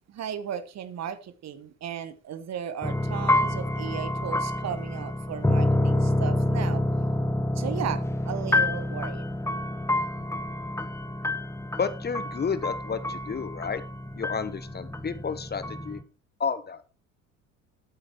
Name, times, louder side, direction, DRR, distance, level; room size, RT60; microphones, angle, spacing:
voice 1, 0.1-6.8 7.5-9.3, right 9 dB, 40° right, 1.3 m, -35 dB
sound 1, 2.8-16.0, left 1 dB, 5° left, 1.4 m, -28 dB
voice 2, 11.8-13.8 14.2-16.0 16.4-16.8, left 6 dB, 25° left, 1.1 m, -31 dB
11.5 x 8.7 x 4.6 m
figure-of-eight pair, 55°, 40 cm